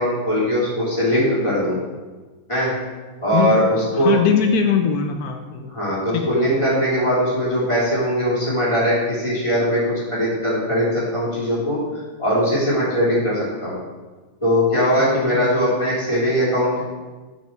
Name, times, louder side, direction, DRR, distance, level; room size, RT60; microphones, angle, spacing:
voice 1, 0.0-1.8 2.5-2.7 3.2-4.1 5.7-13.8 14.4-16.8, equal, 15° left, -8 dB, 2.7 m, -20 dB
voice 2, 4.0-5.7 6.1-6.3 15.0-15.5, left 7 dB, 80° left, 4 dB, 0.8 m, -21 dB
8.8 x 5.9 x 4.3 m, 1.3 s
omnidirectional pair, 2.2 m